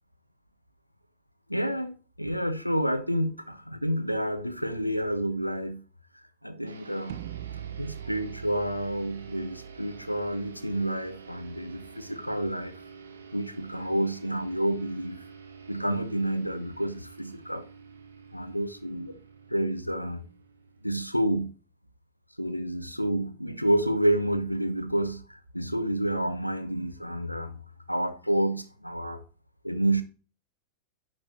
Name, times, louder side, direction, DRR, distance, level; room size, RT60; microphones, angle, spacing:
voice 1, 1.5-5.8 6.4-7.2 7.8-12.8 13.3-15.2 15.7-17.7 18.3-19.1 19.5-20.2 20.8-21.5 22.4-27.6 27.9-29.2 29.6-30.0, right 1 dB, 90° left, 0.7 m, -29 dB
sound 1, 6.7-21.5, right 6 dB, 70° right, 1.0 m, -49 dB
sound 2, 7.1-13.1, right 10 dB, 50° right, 0.4 m, -44 dB
10.0 x 4.4 x 2.9 m
figure-of-eight pair, 90°, 0 cm